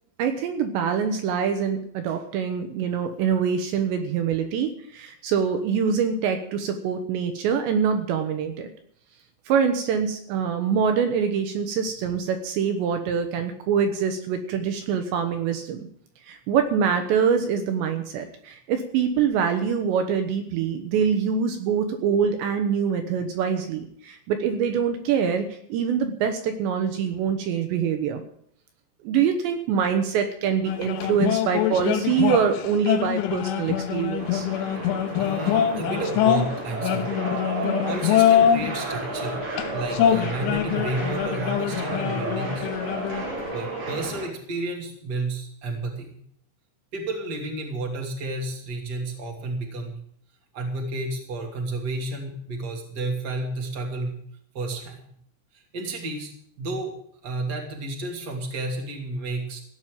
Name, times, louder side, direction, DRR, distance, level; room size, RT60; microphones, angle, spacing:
voice 1, 0.2-8.7 9.5-15.9 16.2-28.2 29.0-34.5 37.6-37.9, right 7 dB, 75° right, 6 dB, 3.1 m, -24 dB
sound 1, 30.6-38.7 39.4-43.5, left 10 dB, 80° left, 3.4 m, -24 dB
sound 2, 34.2-44.3, right 2 dB, 55° right, 5.9 m, -32 dB
voice 2, 35.2-37.1 37.6-39.4 39.7-42.7 43.5-46.2 46.9-49.9 50.5-54.2 54.5-55.0 55.7-56.3 56.6-56.9 57.2-59.6, right 2 dB, 30° right, 0 dB, 2.4 m, -31 dB
16.5 x 6.2 x 9.4 m, 0.66 s
omnidirectional pair, 5.5 m